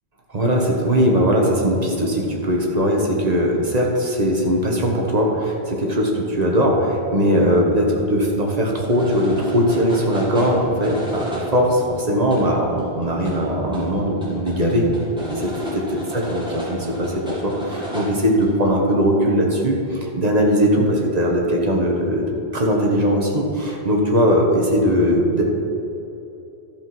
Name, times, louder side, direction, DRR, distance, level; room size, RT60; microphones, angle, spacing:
voice 1, 0.3-14.9 15.3-25.4, equal, 40° right, -1 dB, 1.5 m, -20 dB
sound 1, 8.9-18.7, right 1 dB, 5° right, 2.4 m, -33 dB
12.5 x 5.3 x 6.1 m, 2.9 s
omnidirectional pair, 1.1 m